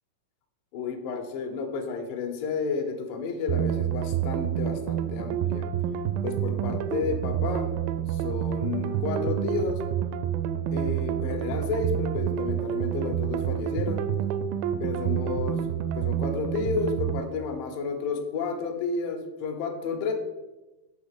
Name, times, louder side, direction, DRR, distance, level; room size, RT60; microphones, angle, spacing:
voice 1, 0.7-5.7 6.2-7.7 8.1-9.8 10.7-14.1 14.8-15.6 15.9-20.1, left 5 dB, 70° left, 3 dB, 2.5 m, -31 dB
sound 1, 3.5-17.2, right 10 dB, 80° right, 2.1 m, -28 dB
7.2 x 4.0 x 6.6 m, 1.1 s
omnidirectional pair, 4.5 m